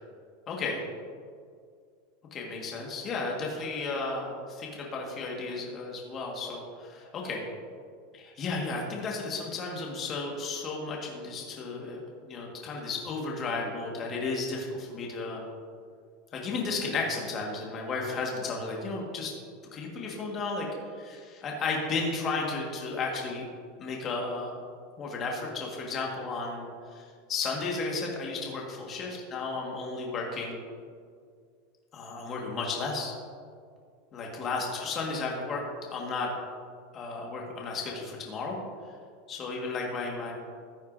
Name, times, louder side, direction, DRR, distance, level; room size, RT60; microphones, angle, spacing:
voice 1, 0.5-0.8 2.3-7.4 8.1-15.4 16.3-19.3 19.7-20.7 21.0-23.5 23.8-24.6 25.0-30.6 31.9-33.1 34.1-35.6 35.9-36.3 36.9-38.6 39.3-40.3, left 3 dB, 25° left, -1 dB, 1.6 m, -33 dB
14.5 x 9.2 x 2.7 m, 2.1 s
supercardioid pair, 160°, 0 cm